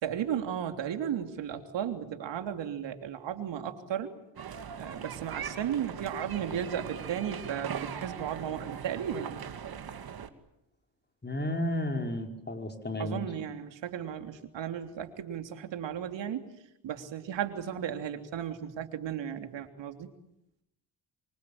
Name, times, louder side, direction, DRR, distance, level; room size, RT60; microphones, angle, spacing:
voice 1, 0.0-4.1 4.4-9.4 13.0-16.5 16.8-20.1, right 9 dB, 70° right, 6 dB, 3.4 m, -35 dB
sound 1, 4.4-10.3, right 7 dB, 50° right, 2.6 m, -40 dB
voice 2, 11.2-13.2, left 1 dB, 20° left, 4 dB, 5.1 m, -32 dB
26.5 x 25.0 x 8.7 m, 0.81 s
supercardioid pair, 65°, 45 cm